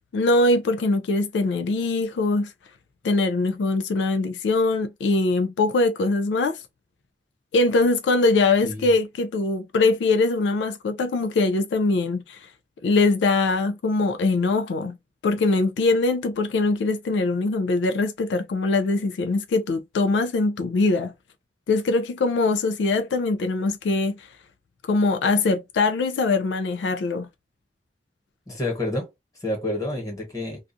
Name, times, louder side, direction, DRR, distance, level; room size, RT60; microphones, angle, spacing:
voice 1, 0.1-2.5 3.0-6.6 7.5-12.5 12.8-15.0 15.2-21.1 21.7-24.3 24.8-27.3, left 3 dB, 75° left, 0.3 m, -22 dB
voice 2, 28.5-29.1 29.4-30.6, left 1 dB, 20° left, 1.2 m, -28 dB
2.4 x 2.3 x 2.5 m
head